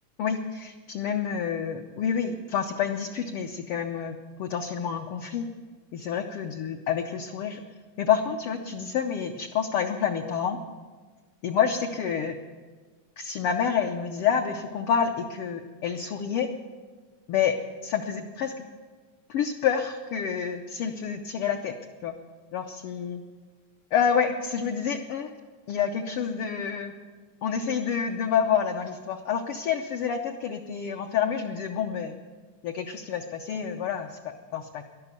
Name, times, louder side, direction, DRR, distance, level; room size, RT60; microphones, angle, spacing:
voice 1, 0.2-5.5 5.9-7.6 8.0-10.6 11.4-12.4 13.2-16.5 17.3-17.6 17.8-18.5 19.3-21.7 22.0-22.2 22.5-23.2 23.9-25.3 25.7-27.0 27.4-32.1 32.6-34.8, left 7 dB, 80° left, 4 dB, 1.3 m, -28 dB
13.0 x 11.5 x 8.2 m, 1.4 s
omnidirectional pair, 3.4 m